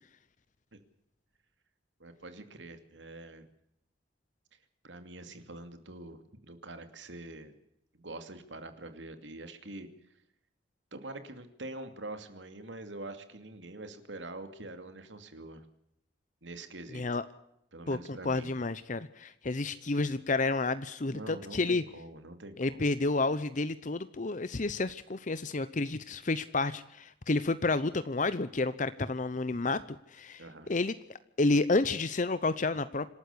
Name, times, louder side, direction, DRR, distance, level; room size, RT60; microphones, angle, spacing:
voice 1, 2.0-3.5 4.8-7.5 7.9-9.9 10.9-15.6 16.4-17.2 17.7-18.5 21.1-22.9 30.4-30.7, right 2 dB, 90° right, 9 dB, 2.6 m, -45 dB
voice 2, 17.9-21.8 22.6-29.8 30.1-30.9 31.4-33.1, left 3 dB, 45° left, 14 dB, 0.8 m, -30 dB
26.5 x 13.0 x 8.5 m, 0.78 s
head